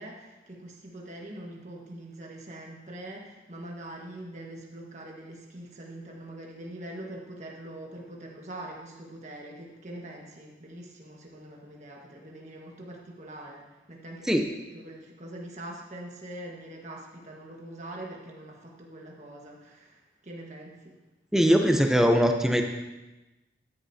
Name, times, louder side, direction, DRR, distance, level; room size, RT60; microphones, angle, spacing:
voice 1, 0.0-14.4 14.7-20.9, right 1 dB, 40° right, -1 dB, 1.5 m, -43 dB
voice 2, 21.3-22.6, equal, 5° right, 4 dB, 0.6 m, -21 dB
13.5 x 10.0 x 2.8 m, 1.1 s
head